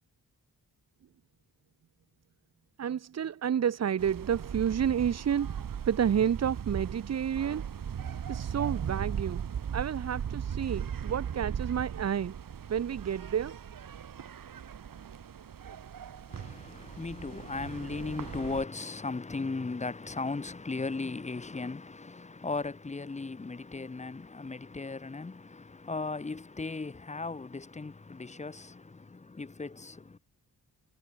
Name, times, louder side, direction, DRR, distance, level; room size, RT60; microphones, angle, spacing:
voice 1, 2.8-7.6 8.3-9.5 9.7-12.3 12.7-13.6, right 8 dB, 45° right, 0.7 m, -30 dB
sound 1, 4.0-18.7, right 8 dB, 60° right, 1.9 m, -38 dB
voice 2, 16.3-30.2, left 3 dB, 20° left, 1.0 m, -37 dB
wide cardioid pair, 160°, 38 cm